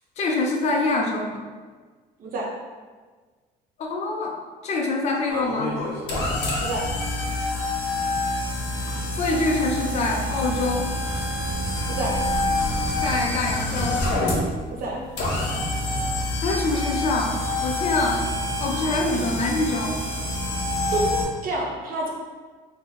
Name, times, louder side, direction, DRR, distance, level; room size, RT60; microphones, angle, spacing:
voice 1, 0.2-1.4 3.8-4.4 4.6-5.8 8.9-10.9 13.0-14.0 16.4-17.4 17.6-18.2 18.6-20.0, left 2 dB, 40° left, 0 dB, 0.4 m, -25 dB
sound 1, 5.3-21.2, left 1 dB, 80° left, 0.7 m, -27 dB
voice 2, 14.7-15.0 19.1-19.2 20.9-22.1, right 2 dB, 55° right, -2 dB, 0.7 m, -28 dB
2.6 x 2.0 x 3.8 m, 1.4 s
cardioid pair, 110°, 17 cm